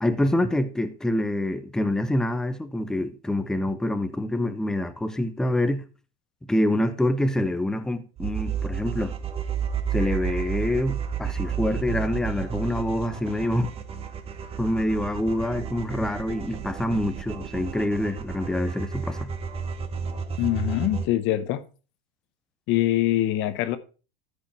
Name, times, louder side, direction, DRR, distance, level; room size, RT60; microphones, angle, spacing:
voice 1, 0.0-5.8 6.5-9.2 9.9-13.7 14.6-19.3, left 1 dB, ahead, 0.5 m, -26 dB
sound 1, 8.2-21.1, right 7 dB, 20° right, 0.9 m, -32 dB
voice 2, 20.4-21.6 22.7-23.8, left 14 dB, 40° left, 0.9 m, -24 dB
12.5 x 5.1 x 4.5 m
supercardioid pair, 145°, 29 cm